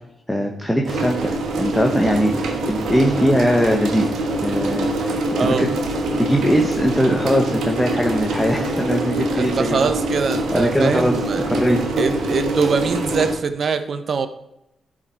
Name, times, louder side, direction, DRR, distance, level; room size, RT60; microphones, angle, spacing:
voice 1, 0.3-4.1 4.4-5.2 5.4-5.7 6.2-9.9 10.2-10.3 10.5-11.1 11.5-11.8, equal, 5° left, 0 dB, 1.2 m, -20 dB
sound 1, 0.8-13.3, right 1 dB, 85° right, 1.4 m, -24 dB
voice 2, 5.4-5.7 9.3-11.4 11.9-14.3, right 5 dB, 60° right, 10 dB, 0.9 m, -22 dB
12.0 x 5.0 x 4.4 m, 0.86 s
cardioid pair, 70°, 0 cm